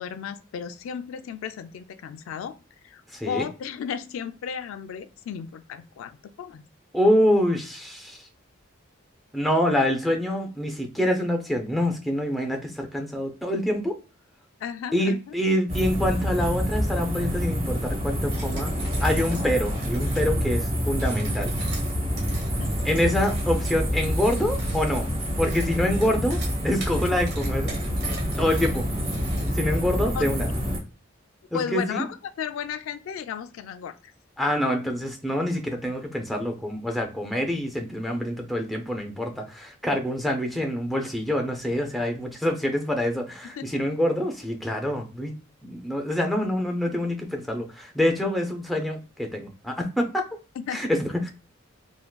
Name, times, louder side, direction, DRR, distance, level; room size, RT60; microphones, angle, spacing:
voice 1, 0.0-2.6 2.8-6.6 14.6-15.3 22.6-22.7 30.1-30.3 31.5-34.1 43.5-43.8 50.6-51.0, left 7 dB, 85° left, 10 dB, 0.3 m, -34 dB
voice 2, 3.1-3.5 6.9-8.2 9.3-14.0 14.9-18.7 19.0-21.5 22.8-25.1 25.4-27.7 28.1-28.9 29.5-30.5 31.5-32.1 34.4-45.3 45.6-50.2 50.7-51.3, left 1 dB, ahead, 2 dB, 0.4 m, -26 dB
sound 1, 15.7-30.8, equal, 30° right, 0.9 m, -27 dB
sound 2, 18.3-20.3 20.9-29.8, right 3 dB, 55° right, 0.9 m, -42 dB
3.5 x 2.2 x 2.2 m, 0.33 s
head